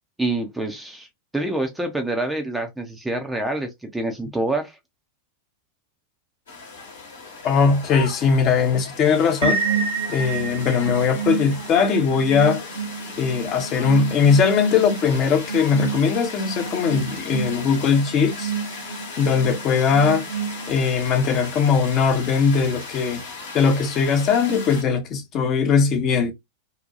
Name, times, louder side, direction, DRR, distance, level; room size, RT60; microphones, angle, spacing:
voice 1, 0.2-1.1 1.3-4.8, right 2 dB, 5° right, 0.6 m, -26 dB
sound 1, 6.5-24.8, left 4 dB, 60° left, 1.0 m, -37 dB
voice 2, 7.4-9.6 10.1-12.6 13.2-18.5 19.2-20.3 20.7-23.2 23.5-26.3, left 6 dB, 35° left, 0.7 m, -20 dB
sound 2, 9.4-21.1, right 6 dB, 65° right, 0.7 m, -30 dB
2.8 x 2.2 x 2.5 m
figure-of-eight pair, 90°, 0 cm